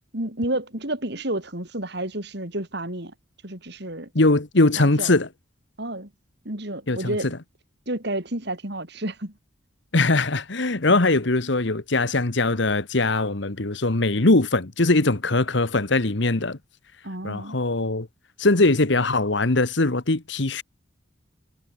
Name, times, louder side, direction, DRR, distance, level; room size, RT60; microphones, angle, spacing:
voice 1, 0.1-3.1 3.4-4.1 4.8-5.1 5.8-6.1 6.4-7.3 7.9-9.3 17.0-17.6, right 1 dB, 55° right, 4.3 m, -30 dB
voice 2, 4.1-5.3 6.9-7.1 9.9-16.6 17.2-18.1 18.4-20.6, left 2 dB, 60° left, 1.4 m, -21 dB
head